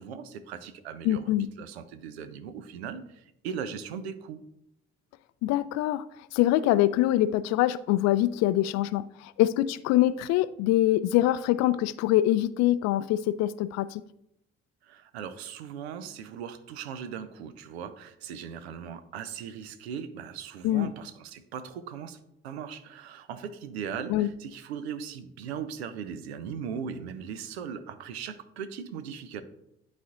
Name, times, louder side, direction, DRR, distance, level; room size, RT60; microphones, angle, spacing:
voice 1, 0.0-1.3 1.6-4.4 14.8-22.2 22.4-29.4, right 7 dB, 80° right, 11 dB, 0.6 m, -39 dB
voice 2, 1.0-1.5 5.4-6.0 6.3-14.0 20.6-20.9 24.1-24.3, left 14 dB, 55° left, 16 dB, 0.4 m, -24 dB
11.0 x 4.1 x 2.5 m, 0.80 s
figure-of-eight pair, 40°, 32 cm